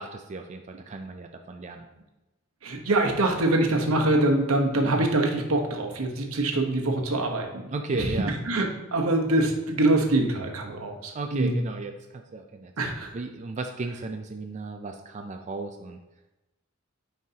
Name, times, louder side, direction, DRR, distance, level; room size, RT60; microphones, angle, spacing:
voice 1, 0.0-1.9 7.7-8.3 11.1-16.0, right 3 dB, 35° right, 4 dB, 0.4 m, -35 dB
voice 2, 2.6-8.1 8.5-11.6 12.8-13.1, right 2 dB, 80° right, 2 dB, 1.0 m, -24 dB
9.3 x 4.6 x 2.8 m, 1.0 s
head